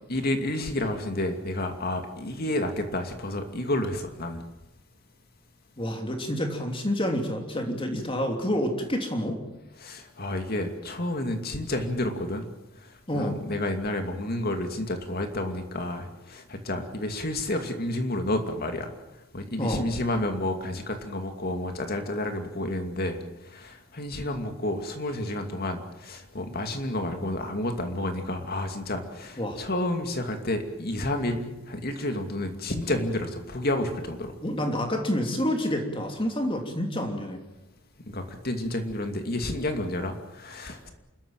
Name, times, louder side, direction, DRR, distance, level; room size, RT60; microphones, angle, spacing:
voice 1, 0.1-4.4 9.8-12.5 12.8-18.9 19.3-34.4 38.0-40.9, left 1 dB, 45° left, 6 dB, 2.6 m, -30 dB
voice 2, 5.8-9.4 13.1-13.4 19.6-19.8 29.4-29.6 34.4-37.4, equal, 25° left, 4 dB, 3.1 m, -28 dB
28.5 x 13.5 x 9.0 m, 0.97 s
head